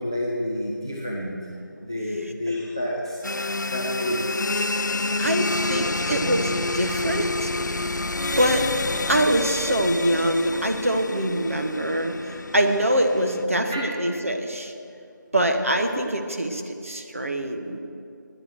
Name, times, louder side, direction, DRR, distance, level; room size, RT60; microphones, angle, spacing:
voice 1, 0.0-1.4 1.8-3.2 3.7-4.2 13.7-13.9, left 1 dB, 15° right, -4 dB, 0.5 m, -29 dB
sound 1, 3.2-13.4, left 2 dB, 60° left, 0.4 m, -28 dB
voice 2, 5.2-7.5 8.4-8.6 9.1-14.7 15.3-17.8, right 1 dB, 45° right, 4 dB, 1.0 m, -24 dB
9.7 x 9.1 x 7.8 m, 2.6 s
figure-of-eight pair, 170°, 11 cm